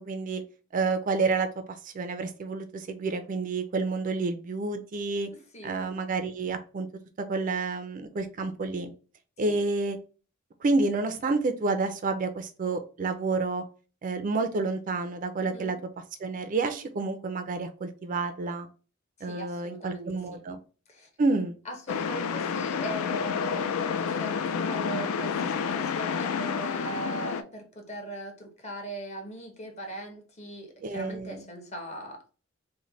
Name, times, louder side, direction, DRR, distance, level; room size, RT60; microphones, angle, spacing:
voice 1, 0.1-0.4 0.7-1.5 1.8-5.3 5.6-6.9 7.2-8.9 9.4-10.0 10.6-13.6 14.0-15.8 16.2-18.7 19.2-20.6 21.2-21.5 30.8-31.4, right 3 dB, 40° right, 0.3 m, -29 dB
voice 2, 5.5-5.9 9.4-9.6 15.4-15.8 19.3-20.2 20.9-21.1 21.6-32.3, right 1 dB, 35° left, 0.8 m, -40 dB
sound 1, 21.9-27.4, left 6 dB, 90° left, 0.4 m, -29 dB
3.1 x 2.1 x 3.8 m
head